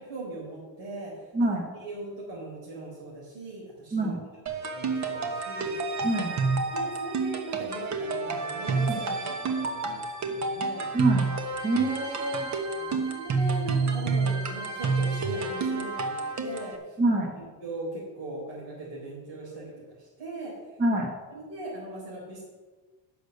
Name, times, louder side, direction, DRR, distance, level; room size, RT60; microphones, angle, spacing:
voice 1, 0.1-1.3 1.8-4.3 4.7-5.7 6.1-6.2 6.7-10.9 11.8-11.9 12.7-19.7 20.0-20.5 20.9-21.0 21.3-22.5, right 2 dB, 90° right, -6 dB, 4.1 m, -39 dB
voice 2, 1.3-1.7 3.9-4.2 6.0-6.3 8.9-9.0 10.9-11.3 11.6-12.5 17.0-17.3 20.8-21.1, right 2 dB, 25° right, 2 dB, 1.3 m, -25 dB
sound 1, 4.5-16.8, right 4 dB, 40° right, 1.1 m, -29 dB
10.0 x 6.8 x 6.6 m, 1.3 s
cardioid pair, 175°, 42 cm